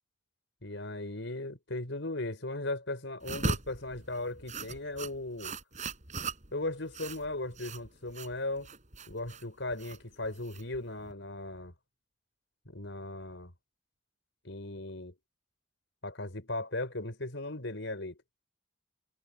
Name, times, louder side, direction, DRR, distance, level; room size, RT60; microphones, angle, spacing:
voice 1, 0.6-5.5 6.5-8.7 9.1-11.7 12.7-13.5 14.4-15.1 16.0-18.2, left 2 dB, 75° left, 4.9 m, -37 dB
sound 1, 3.2-11.1, right 3 dB, 40° right, 5.0 m, -39 dB
head